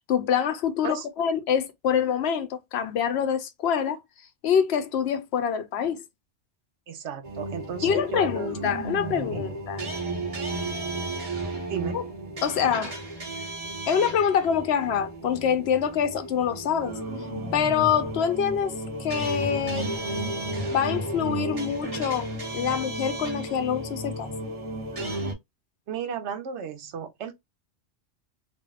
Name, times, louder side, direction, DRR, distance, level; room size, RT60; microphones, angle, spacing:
voice 1, 0.0-4.0 4.4-6.0 7.8-9.8 11.9-12.0 12.4-13.0 13.9-17.0 17.5-19.9 20.7-22.3 22.5-24.3, left 7 dB, 65° left, 0.8 m, -25 dB
voice 2, 6.9-8.5 9.3-9.6 11.7-12.0 25.9-27.3, right 7 dB, 75° right, 1.0 m, -34 dB
sound 1, 7.2-25.3, right 1 dB, 30° right, 1.0 m, -33 dB
3.3 x 2.6 x 2.3 m
omnidirectional pair, 1.2 m